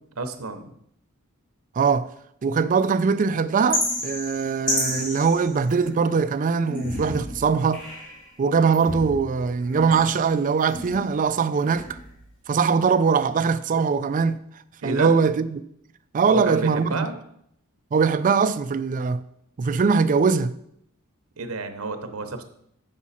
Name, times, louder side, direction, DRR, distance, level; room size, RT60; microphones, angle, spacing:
voice 1, 0.2-0.7 14.8-15.2 16.3-17.2 21.4-22.4, right 3 dB, 75° right, 0.8 m, -30 dB
voice 2, 1.8-2.1 2.4-7.8 8.4-12.0 12.5-14.4 14.8-15.6 16.1-17.1 17.9-19.2 19.6-20.5, right 5 dB, 40° right, 0.4 m, -21 dB
sound 1, 3.7-6.1 6.6-8.3 8.7-11.2 11.6-12.3, left 1 dB, 60° left, 3.3 m, -31 dB
7.2 x 6.1 x 4.2 m
head